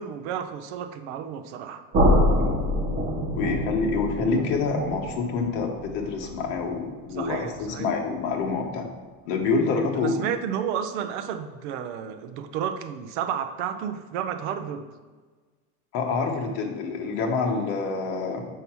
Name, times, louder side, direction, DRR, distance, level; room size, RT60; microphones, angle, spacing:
voice 1, 0.0-1.8 7.1-7.9 10.0-14.9, right 8 dB, 50° right, 8 dB, 0.6 m, -31 dB
sound 1, 1.9-7.8, equal, 30° right, 1.5 m, -26 dB
voice 2, 3.3-8.9 9.2-10.2 15.9-18.5, left 4 dB, 45° left, 1 dB, 1.3 m, -27 dB
6.8 x 5.7 x 4.6 m, 1.4 s
supercardioid pair, 175°, 45 cm